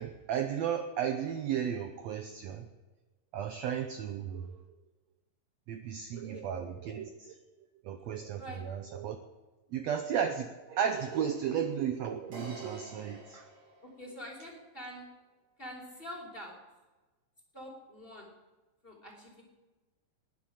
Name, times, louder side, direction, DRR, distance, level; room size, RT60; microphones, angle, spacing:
voice 1, 0.0-2.7 3.3-4.6 5.7-7.4 7.8-9.2 9.7-13.5, right 8 dB, 70° right, 7 dB, 1.7 m, -34 dB
voice 2, 6.1-6.5 8.4-8.6 13.8-15.1 15.6-16.6 17.5-18.3 18.8-19.4, equal, 15° left, 0 dB, 2.9 m, -45 dB
sound 1, 10.9-14.3, right 1 dB, 50° right, 3.0 m, -50 dB
20.0 x 10.5 x 5.0 m, 1.2 s
omnidirectional pair, 3.9 m